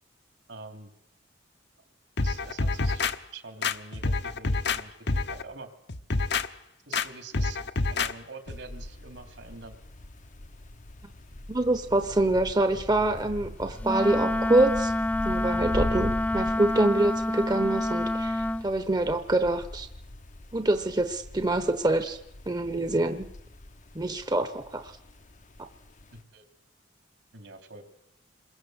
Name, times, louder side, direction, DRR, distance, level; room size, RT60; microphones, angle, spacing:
voice 1, 0.5-0.9 2.2-3.0 3.3-5.7 6.9-7.6 7.8-9.8 26.1-26.4 27.3-27.8, right 3 dB, 70° right, 7 dB, 3.4 m, -45 dB
sound 1, 2.2-3.1 3.6-4.8 5.1-5.4 5.9-6.5 6.9-7.1 7.3-8.1 8.5-8.6, left 3 dB, 65° left, 1.1 m, -27 dB
sound 2, 8.5-26.2, left 1 dB, 40° left, 0.9 m, -41 dB
voice 2, 11.5-14.9 15.2-19.9 20.5-22.2 22.5-23.3 23.9-24.9, right 2 dB, 20° right, 9 dB, 1.0 m, -25 dB
Wind instrument woodwind instrument, 13.8-18.7, left 1 dB, 10° left, 0.9 m, -28 dB
27.0 x 22.0 x 8.0 m, 0.82 s
head